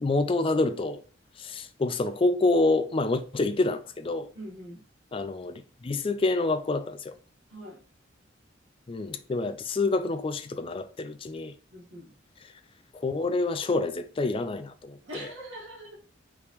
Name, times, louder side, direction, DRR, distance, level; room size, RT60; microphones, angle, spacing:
voice 1, 0.0-1.0 1.4-4.3 5.1-7.1 8.9-11.5 12.4-12.5 12.9-15.3, left 2 dB, 30° left, 0.4 m, -27 dB
voice 2, 4.3-4.8 7.5-7.8 11.7-12.1 15.1-16.0, equal, 80° right, 1.7 m, -42 dB
5.0 x 3.4 x 3.0 m
head